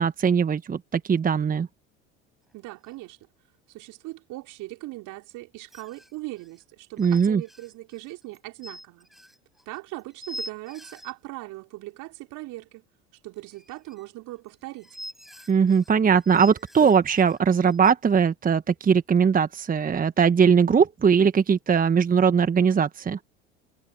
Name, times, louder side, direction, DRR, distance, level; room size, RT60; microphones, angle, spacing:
voice 1, 0.0-1.7 7.0-7.4 15.5-23.2, right 6 dB, 20° right, 1.4 m, -20 dB
sound 1, 2.5-2.6 2.8-3.0 5.7-11.1 13.4-17.9, equal, ahead, 5.6 m, -44 dB
voice 2, 2.5-3.2 3.7-9.1 9.7-12.8 13.2-15.0, right 20 dB, 55° right, 4.1 m, -39 dB
hypercardioid pair, 75°, 37 cm